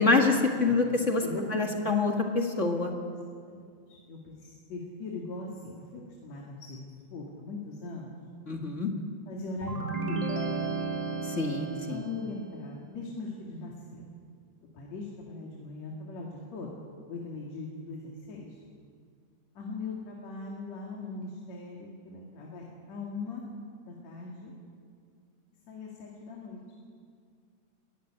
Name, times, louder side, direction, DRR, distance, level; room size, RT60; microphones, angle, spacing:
voice 1, 0.0-1.2 1.5-2.9 8.5-8.9 11.2-12.0, left 3 dB, 30° left, 2 dB, 1.7 m, -26 dB
voice 2, 1.2-1.8 3.5-8.2 9.3-10.3 11.7-14.1 14.7-16.8 17.1-18.6 19.6-23.4 23.8-24.5 25.7-26.6, left 3 dB, 65° left, -2 dB, 3.5 m, -40 dB
sound 1, 9.6-12.4, right 4 dB, 50° right, 0.4 m, -33 dB
20.5 x 15.0 x 10.0 m, 2.2 s
omnidirectional pair, 3.3 m